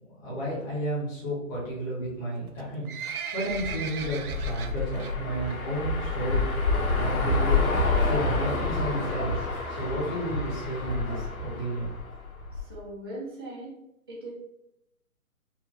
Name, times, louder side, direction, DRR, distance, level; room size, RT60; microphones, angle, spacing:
voice 1, 0.2-2.9 3.3-6.4 6.9-7.6 8.0-9.4 9.8-11.9, right 1 dB, 15° left, -10 dB, 1.4 m, -32 dB
Livestock farm animals working animals, 2.5-5.1 5.5-5.8 6.1-6.2 6.9-7.0 7.2-7.3 7.5-7.6 8.1-8.4 9.0-9.1 9.3-9.4 9.6-9.7 9.9-10.0 10.5-10.6 11.0-11.1 11.6-11.7, right 7 dB, 90° right, 0.7 m, -37 dB
sound 1, 3.5-12.7, left 3 dB, 80° left, 1.6 m, -28 dB
voice 2, 12.5-13.8 14.1-14.3, right 1 dB, 20° right, -8 dB, 0.6 m, -39 dB
5.4 x 2.8 x 3.1 m, 0.82 s
hypercardioid pair, 170°, 43 cm